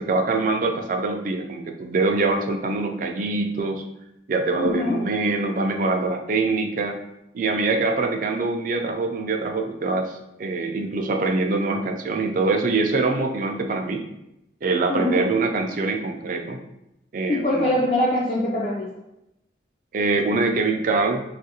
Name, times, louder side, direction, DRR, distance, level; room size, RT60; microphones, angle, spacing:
voice 1, 0.0-3.8 4.3-7.0 7.3-14.1 14.6-16.6 17.1-17.9 19.9-21.2, right 3 dB, 50° right, 4 dB, 0.3 m, -24 dB
voice 2, 4.6-5.0 14.9-15.3 17.3-18.9, left 1 dB, 35° left, -5 dB, 0.4 m, -23 dB
3.4 x 2.4 x 2.8 m, 0.86 s
head